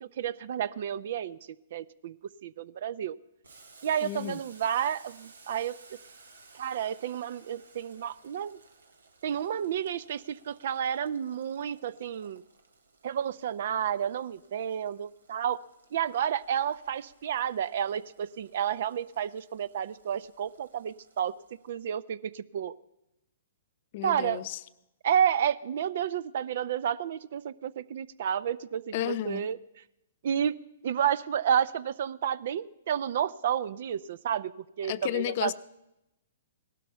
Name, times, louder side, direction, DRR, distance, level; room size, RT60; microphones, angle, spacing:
voice 1, 0.0-1.4 1.7-3.2 3.8-5.8 6.5-8.6 9.2-12.4 13.0-15.6 15.9-21.3 21.6-22.7 24.0-24.4 25.0-29.6 30.2-30.6 30.8-34.5 34.8-35.5, right 9 dB, 60° right, 19 dB, 0.6 m, -31 dB
Boiling, 3.4-21.9, right 3 dB, 85° right, 1.6 m, -58 dB
voice 2, 4.0-4.4 23.9-24.6 28.9-29.5 34.9-35.5, left 13 dB, 50° left, 15 dB, 0.6 m, -32 dB
18.0 x 12.5 x 5.6 m, 0.90 s
hypercardioid pair, 130°, 0 cm